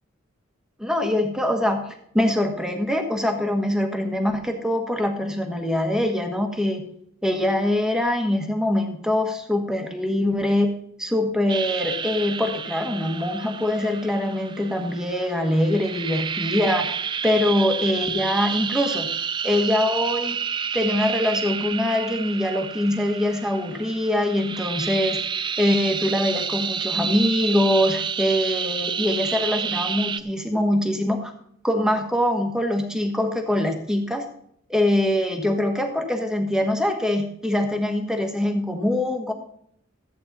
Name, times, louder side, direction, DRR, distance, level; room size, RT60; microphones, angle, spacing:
voice 1, 0.8-1.8 2.1-6.8 7.2-10.7 11.0-16.9 17.2-19.1 19.4-20.4 20.7-25.2 25.6-31.3 31.6-34.2 34.7-39.3, left 1 dB, 5° right, 4 dB, 1.4 m, -23 dB
sound 1, 11.5-30.2, right 7 dB, 20° right, 0.4 m, -30 dB
14.0 x 8.8 x 4.1 m, 0.67 s
head